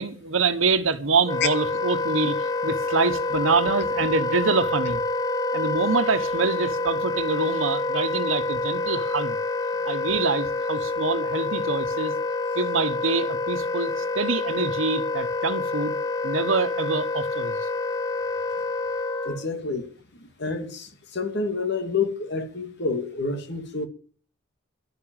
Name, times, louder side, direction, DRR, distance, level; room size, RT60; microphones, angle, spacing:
voice 1, 0.0-5.0 5.5-9.4 9.8-12.1 12.5-15.9 16.2-17.7, right 4 dB, 80° right, 1.2 m, -25 dB
Wind instrument woodwind instrument, 1.2-19.5, left 2 dB, 20° left, 1.0 m, -27 dB
voice 2, 19.3-19.9 20.2-23.9, left 4 dB, 55° left, 2.2 m, -29 dB
12.0 x 9.9 x 9.0 m
head